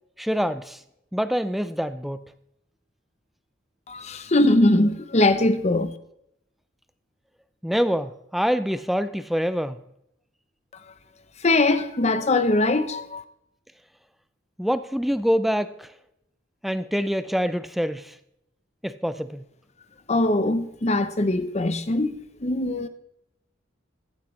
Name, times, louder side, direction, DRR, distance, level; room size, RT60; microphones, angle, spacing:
voice 1, 0.2-0.8 1.1-2.3 7.6-9.8 14.6-15.9 16.6-18.1 18.8-19.5, equal, ahead, 0.4 m, -25 dB
voice 2, 3.9-6.0 11.4-13.2 20.1-22.9, left 2 dB, 35° left, 0.8 m, -21 dB
15.5 x 11.0 x 3.2 m
head